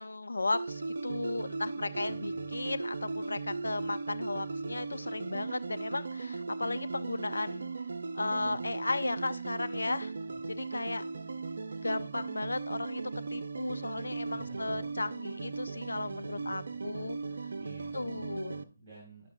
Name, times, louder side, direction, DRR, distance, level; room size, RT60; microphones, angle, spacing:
voice 1, 0.0-7.7 8.1-10.1 10.6-11.0 11.8-17.2 17.9-18.6, left 2 dB, 70° left, 10 dB, 0.6 m, -35 dB
sound 1, 0.5-18.6, right 4 dB, 60° right, 0.5 m, -38 dB
voice 2, 1.9-2.5 8.4-8.9 10.2-10.4 14.3-14.9 16.0-16.9 17.6-19.3, equal, 25° right, -4 dB, 2.6 m, -53 dB
11.0 x 5.7 x 2.5 m, 0.35 s
figure-of-eight pair, 145°, 0 cm